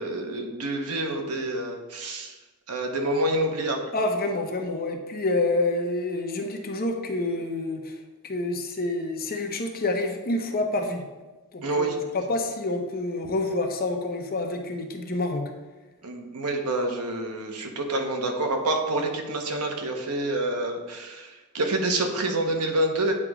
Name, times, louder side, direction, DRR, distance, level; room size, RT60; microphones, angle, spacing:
voice 1, 0.0-2.4 2.7-3.8 11.6-12.0 16.0-23.1, right 1 dB, 90° right, 4 dB, 1.0 m, -27 dB
voice 2, 3.9-11.0 11.5-15.4, left 2 dB, 45° left, 3 dB, 0.8 m, -28 dB
8.5 x 3.0 x 4.8 m, 1.2 s
head